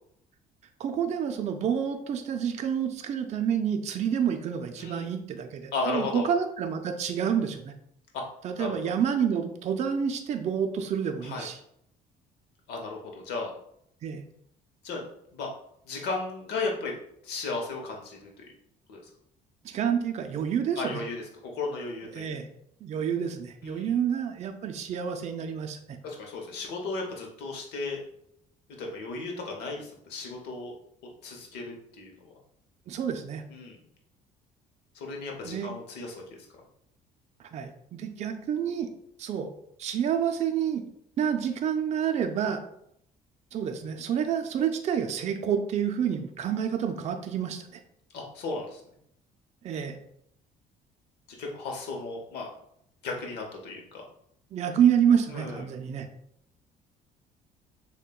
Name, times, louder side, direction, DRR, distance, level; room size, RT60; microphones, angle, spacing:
voice 1, 0.8-7.7 8.4-11.6 14.0-14.2 19.6-21.0 22.1-22.5 22.8-26.0 32.9-33.4 35.4-35.7 37.5-38.9 39.2-39.5 39.8-40.8 41.2-42.6 43.5-47.8 49.6-50.0 54.5-56.1, right 8 dB, 40° right, 5 dB, 0.4 m, -28 dB
voice 2, 5.7-6.3 8.1-8.2 8.6-8.7 11.2-11.5 12.7-13.5 14.8-15.0 15.3-15.5 15.9-16.9 17.2-18.3 18.9-19.0 20.8-22.3 23.6-23.9 26.0-28.0 28.8-30.7 31.2-32.1 33.5-33.8 34.9-36.5 48.1-48.8 51.4-52.5 53.0-54.0 55.3-55.6, left 3 dB, 80° left, 0 dB, 0.8 m, -35 dB
6.4 x 2.2 x 2.3 m, 0.72 s
cardioid pair, 110°, 17 cm